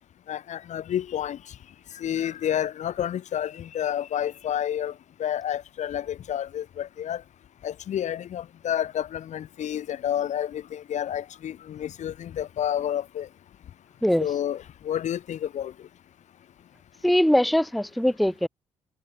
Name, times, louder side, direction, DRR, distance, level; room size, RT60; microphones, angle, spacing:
voice 1, 0.3-1.4 2.0-4.9 5.2-7.2 7.6-13.3 14.2-15.7, left 10 dB, 60° left, 1.1 m, -30 dB
voice 2, 17.0-18.5, equal, ahead, 0.6 m, -21 dB
hypercardioid pair, 45°, 14 cm